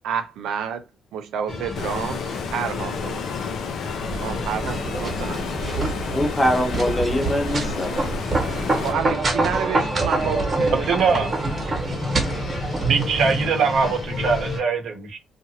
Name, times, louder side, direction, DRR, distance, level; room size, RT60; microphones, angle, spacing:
voice 1, 0.0-0.8 1.1-2.2 2.5-3.2 4.2-5.4 8.8-11.2, right 7 dB, 90° right, 0.4 m, -29 dB
sound 1, 1.5-14.6, left 3 dB, 45° left, 0.8 m, -33 dB
Stream, 1.7-8.9, left 6 dB, 75° left, 0.4 m, -31 dB
sound 2, 4.0-13.5, right 3 dB, 35° right, 1.0 m, -26 dB
voice 2, 5.7-8.1, equal, 15° left, 0.6 m, -23 dB
voice 3, 10.9-11.3 12.8-15.2, right 5 dB, 65° right, 0.7 m, -22 dB
2.8 x 2.4 x 2.7 m
cardioid pair, 120°, 0 cm